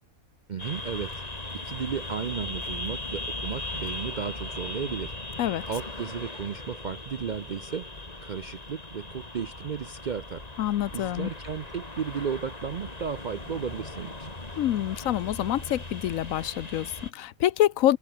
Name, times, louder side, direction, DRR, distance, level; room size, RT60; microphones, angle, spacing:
voice 1, 0.5-1.2 1.5-5.2 5.7-7.9 8.2-10.5 10.9-14.3, right 7 dB, 55° right, 0.5 m, -34 dB
sound 1, 0.6-17.1, left 2 dB, 25° left, 2.9 m, -38 dB
voice 2, 10.6-11.3 14.6-18.0, left 12 dB, 75° left, 1.0 m, -26 dB
omnidirectional pair, 1.5 m